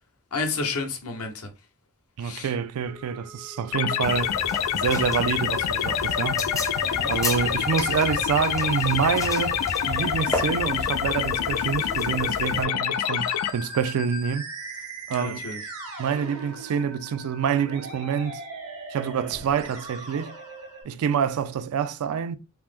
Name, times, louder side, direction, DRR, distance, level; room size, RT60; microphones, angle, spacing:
voice 1, 0.3-1.5 2.2-2.5 6.8-7.2 15.1-15.6, left 4 dB, 70° left, 0.7 m, -31 dB
voice 2, 2.2-4.3 4.7-6.5 6.8-14.4 15.1-15.4 16.0-18.4 18.9-20.4 20.8-22.4, right 7 dB, 70° right, 0.3 m, -27 dB
Musical instrument, 2.9-20.8, right 2 dB, 90° right, 1.3 m, -39 dB
sound 1, 3.7-13.5, left 10 dB, 85° left, 0.3 m, -26 dB
sound 2, 4.0-12.6, left 1 dB, 15° left, 0.5 m, -35 dB
2.9 x 2.0 x 3.4 m
head